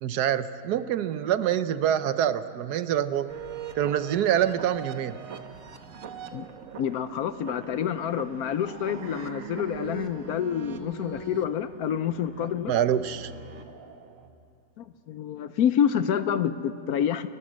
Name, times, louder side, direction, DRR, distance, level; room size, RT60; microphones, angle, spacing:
voice 1, 0.0-3.4 3.7-5.1 12.7-13.3, right 10 dB, 70° right, 13 dB, 1.2 m, -25 dB
sound 1, 3.3-14.3, right 6 dB, 55° right, 1.3 m, -42 dB
voice 2, 6.8-12.7 14.8-17.3, left 9 dB, 70° left, 12 dB, 1.0 m, -28 dB
29.5 x 12.5 x 7.5 m, 2.7 s
omnidirectional pair, 1.8 m